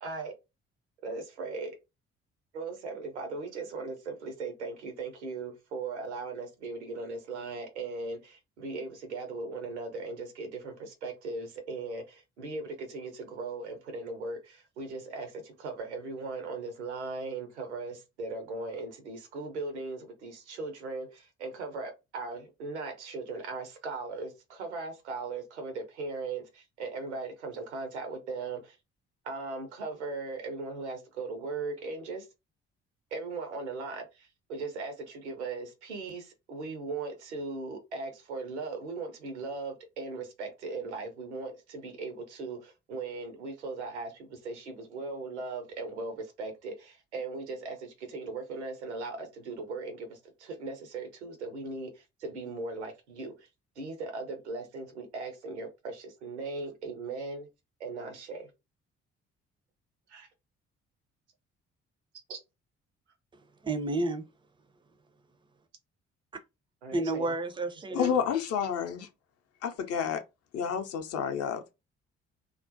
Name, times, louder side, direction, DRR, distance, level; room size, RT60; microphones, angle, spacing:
voice 1, 0.0-0.3 1.0-1.8 2.5-28.8 29.2-32.3 33.1-53.5 53.8-57.5 57.8-58.5 60.1-60.3 62.3-62.4 66.8-67.3 67.9-68.3, right 3 dB, 80° right, 0.6 m, -38 dB
voice 2, 63.3-64.3 66.9-68.1, right 2 dB, 15° right, 0.4 m, -31 dB
voice 3, 67.9-69.1 69.6-70.2 70.5-71.7, left 7 dB, 45° left, 0.6 m, -30 dB
2.4 x 2.0 x 2.5 m
figure-of-eight pair, 45°, 34 cm